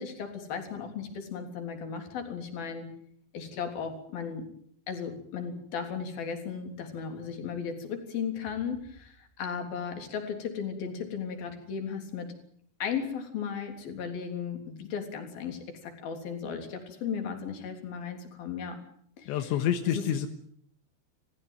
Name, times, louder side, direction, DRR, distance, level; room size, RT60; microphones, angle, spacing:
voice 1, 0.0-2.9 3.3-4.5 4.9-12.3 12.8-18.8 19.2-19.4 19.9-20.0, left 6 dB, 55° left, 5 dB, 5.1 m, -36 dB
voice 2, 19.3-20.3, left 10 dB, 85° left, 7 dB, 3.6 m, -28 dB
28.5 x 15.5 x 9.2 m, 0.65 s
omnidirectional pair, 5.1 m